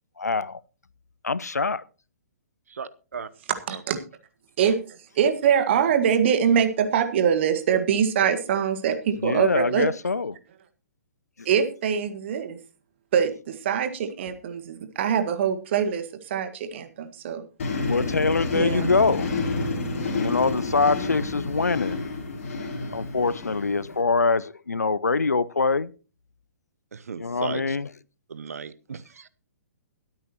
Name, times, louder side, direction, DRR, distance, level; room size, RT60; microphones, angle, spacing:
voice 1, 0.2-0.6 1.2-1.8 9.2-10.4 17.9-19.3 20.1-22.0 22.9-25.9 27.2-27.9, left 4 dB, 80° left, 0.6 m, -24 dB
voice 2, 2.7-3.3 3.7-3.8 26.9-27.8 28.3-29.3, right 6 dB, 65° right, 0.9 m, -36 dB
voice 3, 3.7-4.0 4.6-4.8 5.2-9.9 11.5-12.6 13.1-17.4 18.5-18.9, right 8 dB, 45° right, 1.7 m, -23 dB
sound 1, 17.6-24.0, left 3 dB, 50° left, 3.3 m, -29 dB
22.0 x 8.7 x 3.0 m
figure-of-eight pair, 120°, 9 cm